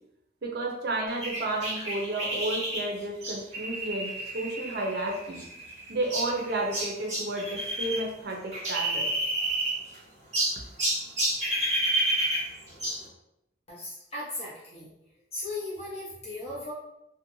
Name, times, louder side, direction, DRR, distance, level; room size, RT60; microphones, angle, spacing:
voice 1, 0.4-5.4 5.9-9.1, right 2 dB, 55° right, 0 dB, 0.5 m, -32 dB
sound 1, 1.2-8.0 8.3-10.0 10.3-13.1, right 1 dB, 35° right, 1.1 m, -30 dB
voice 2, 13.7-14.9 15.3-16.7, left 2 dB, 35° left, -6 dB, 0.8 m, -37 dB
2.4 x 2.1 x 2.9 m, 0.82 s
head